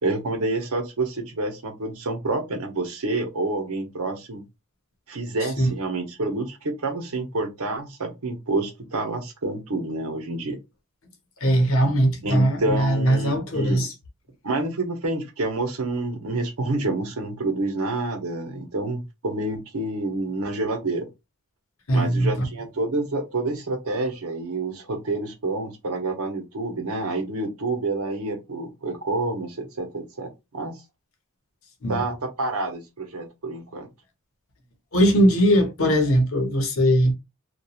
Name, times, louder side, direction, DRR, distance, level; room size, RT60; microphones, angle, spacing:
voice 1, 0.0-4.4 5.1-10.6 12.2-13.9 14.4-21.1 21.9-30.8 31.9-33.9, right 2 dB, 80° right, 0.8 m, -28 dB
voice 2, 5.4-5.7 11.4-13.9 21.9-22.4 31.8-32.1 34.9-37.1, equal, 65° left, 0.8 m, -20 dB
2.9 x 2.3 x 2.3 m
head